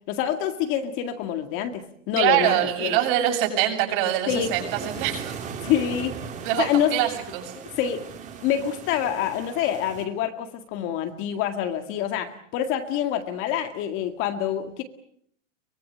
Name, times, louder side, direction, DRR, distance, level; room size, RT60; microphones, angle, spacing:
voice 1, 0.1-3.0 4.3-4.5 5.6-6.2 6.6-7.0 7.8-8.1 8.4-14.8, left 10 dB, 35° left, 7 dB, 2.1 m, -26 dB
voice 2, 2.2-4.6 5.0-5.3 6.4-7.5, right 12 dB, 45° right, 4 dB, 7.7 m, -24 dB
sound 1, 4.3-10.0, right 6 dB, 20° right, 3.3 m, -38 dB
24.0 x 21.5 x 8.8 m, 0.68 s
supercardioid pair, 155°, 38 cm